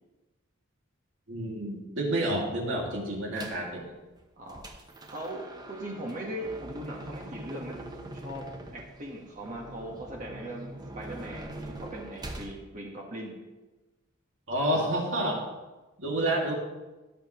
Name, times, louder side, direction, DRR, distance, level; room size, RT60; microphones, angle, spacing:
voice 1, 1.3-3.9 14.5-15.4 16.0-16.5, right 1 dB, 65° right, -1 dB, 2.4 m, -29 dB
sound 1, 3.4-3.7 4.2-12.5, right 1 dB, 20° right, 0.9 m, -43 dB
voice 2, 5.1-8.5 8.7-13.4, right 1 dB, 40° right, -1 dB, 1.5 m, -39 dB
16.0 x 6.9 x 3.2 m, 1.1 s
head